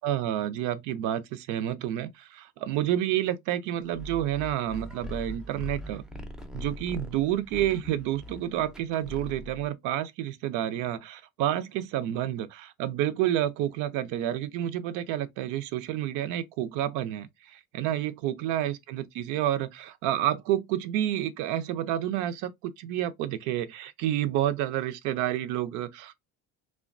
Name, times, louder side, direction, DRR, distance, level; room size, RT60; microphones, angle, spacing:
voice 1, 0.0-6.0 6.5-26.1, right 12 dB, 75° right, 0.5 m, -29 dB
sound 1, 3.9-9.7, left 1 dB, ahead, 0.4 m, -41 dB
2.8 x 2.2 x 2.4 m
cardioid pair, 115°, 31 cm